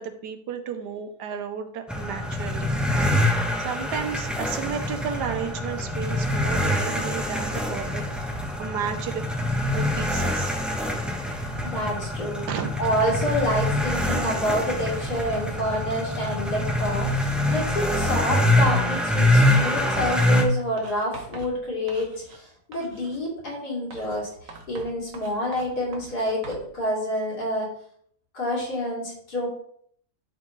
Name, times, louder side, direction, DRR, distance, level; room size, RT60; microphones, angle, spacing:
voice 1, 0.0-8.0 8.3-9.2 9.7-10.6 12.5-12.7, right 7 dB, 90° right, 8 dB, 1.5 m, -33 dB
sound 1, 1.9-20.4, left 1 dB, ahead, 0.7 m, -25 dB
voice 2, 11.6-12.5 12.8-27.7 28.3-29.5, equal, 70° left, -4 dB, 3.3 m, -28 dB
Writing, 20.8-22.5 22.7-23.3 23.9-26.7, right 4 dB, 55° right, 1.4 m, -44 dB
11.5 x 4.6 x 3.2 m, 0.64 s
omnidirectional pair, 1.8 m